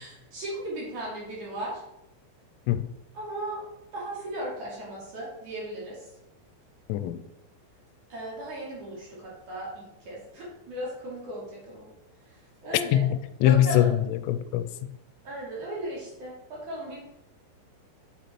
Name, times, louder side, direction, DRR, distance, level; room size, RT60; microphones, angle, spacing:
voice 1, 0.0-1.8 3.1-3.7 3.9-6.0 8.1-11.9 12.6-13.1 13.4-13.9 15.2-17.0, right 1 dB, 45° right, 3.4 m, -36 dB
voice 2, 6.9-7.2 12.9-14.7, left 12 dB, 85° left, 3.0 m, -23 dB
7.9 x 7.1 x 4.4 m
omnidirectional pair, 5.8 m